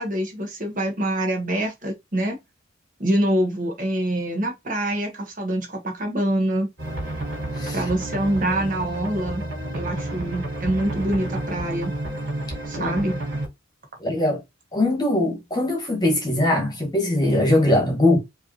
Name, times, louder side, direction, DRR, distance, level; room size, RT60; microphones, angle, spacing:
voice 1, 0.0-2.4 3.0-6.7 7.7-9.4 9.7-11.9 12.7-13.2, right 1 dB, 40° right, 1.2 m, -25 dB
sound 1, 6.8-13.5, right 1 dB, 60° right, 2.9 m, -30 dB
voice 2, 14.0-14.4 14.7-18.2, left 1 dB, 20° left, 1.4 m, -21 dB
5.1 x 3.0 x 2.7 m
head